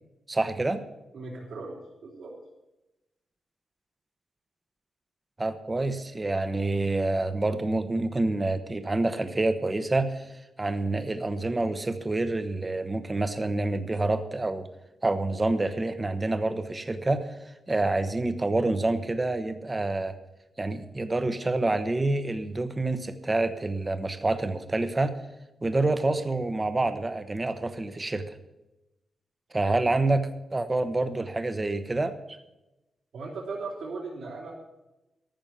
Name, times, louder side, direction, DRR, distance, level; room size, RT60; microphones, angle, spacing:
voice 1, 0.3-0.8 5.4-10.2 10.6-14.7 15.0-17.2 17.7-20.1 20.6-25.1 25.6-28.2 29.5-32.4, right 2 dB, 15° right, 10 dB, 0.9 m, -27 dB
voice 2, 1.1-1.8 2.0-2.3 33.1-34.5, right 3 dB, 75° right, -5 dB, 4.2 m, -37 dB
14.0 x 6.2 x 9.1 m, 0.96 s
wide cardioid pair, 170°, 0 cm